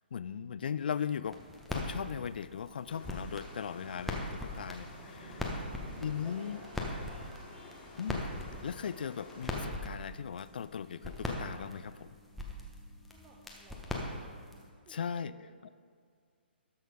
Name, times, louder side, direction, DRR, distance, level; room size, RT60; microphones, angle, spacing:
voice 1, 0.1-1.4 1.7-5.5 6.0-6.6 8.0-8.3 8.6-12.1 14.9-15.4, left 7 dB, 55° left, 15 dB, 0.3 m, -38 dB
sound 1, 1.3-14.7, left 1 dB, ahead, 1.1 m, -41 dB
sound 2, 2.9-9.7, left 3 dB, 20° left, 2.2 m, -52 dB
sound 3, 4.9-7.9, right 2 dB, 50° right, 1.9 m, -52 dB
voice 2, 5.5-6.5 6.8-7.4 13.1-14.3 14.8-15.7, right 3 dB, 20° right, -3 dB, 1.3 m, -59 dB
12.5 x 6.4 x 5.0 m, 2.1 s
figure-of-eight pair, 130°, 6 cm